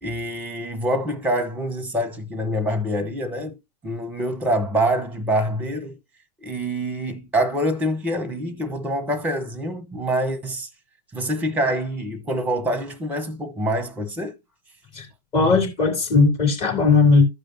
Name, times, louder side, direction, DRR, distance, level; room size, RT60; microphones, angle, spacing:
voice 1, 0.0-3.6 3.8-6.0 6.4-10.7 11.1-14.4, right 1 dB, 5° right, 1.1 m, -25 dB
voice 2, 15.3-17.2, left 4 dB, 30° left, 2.9 m, -17 dB
14.0 x 5.0 x 2.8 m
figure-of-eight pair, 110°, 20 cm